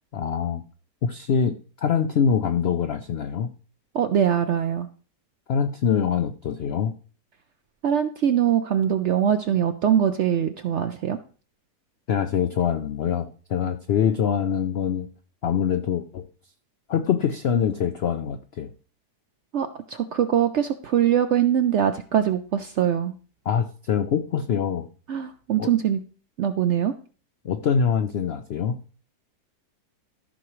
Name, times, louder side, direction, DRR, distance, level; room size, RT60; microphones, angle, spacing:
voice 1, 0.1-0.6 1.0-3.5 5.5-6.9 12.1-15.1 15.4-16.2 16.9-18.7 23.5-24.9 25.6-25.7 27.4-28.8, left 7 dB, 85° left, 8 dB, 0.5 m, -24 dB
voice 2, 3.9-4.9 7.8-11.2 19.5-23.1 25.1-26.0 26.4-26.9, right 9 dB, 70° right, 9 dB, 0.6 m, -22 dB
14.0 x 5.9 x 3.1 m, 0.41 s
omnidirectional pair, 1.8 m